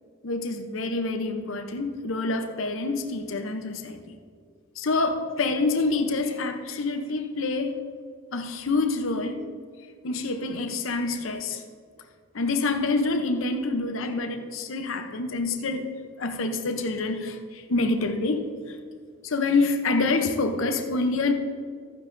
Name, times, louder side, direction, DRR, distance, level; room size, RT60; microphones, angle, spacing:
voice 1, 0.2-4.1 4.8-7.8 8.3-9.4 10.0-11.6 12.3-15.9 16.2-18.5 19.2-21.3, left 3 dB, 70° left, 0.7 m, -27 dB
13.5 x 9.7 x 2.6 m
head